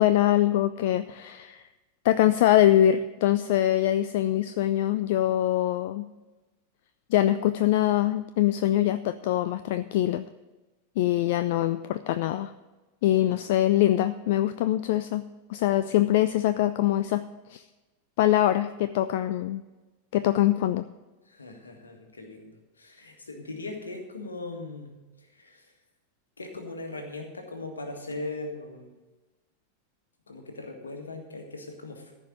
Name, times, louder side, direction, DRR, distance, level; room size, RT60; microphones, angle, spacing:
voice 1, 0.0-1.6 2.0-6.1 7.1-10.2 11.0-12.5 13.0-15.2 15.5-17.2 17.5-17.6 18.2-19.6 20.1-20.8, left 13 dB, 50° left, 13 dB, 0.3 m, -23 dB
voice 2, 13.1-13.4 21.2-25.7 26.4-28.9 30.3-32.1, left 2 dB, 75° left, 4 dB, 1.8 m, -39 dB
14.0 x 5.4 x 7.5 m, 1.2 s
figure-of-eight pair, 90°, 0 cm